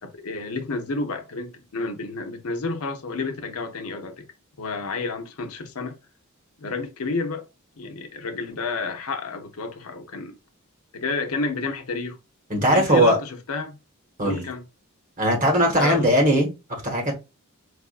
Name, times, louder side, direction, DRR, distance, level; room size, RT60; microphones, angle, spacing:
voice 1, 0.0-4.3 4.6-5.9 6.6-7.5 7.8-10.4 10.9-12.2 12.7-13.8 14.2-14.6 15.7-16.1, left 3 dB, 70° left, 0.7 m, -30 dB
voice 2, 12.5-13.2 14.2-14.4 15.2-16.5 16.8-17.1, equal, 35° right, 1.5 m, -19 dB
4.7 x 2.5 x 2.4 m
head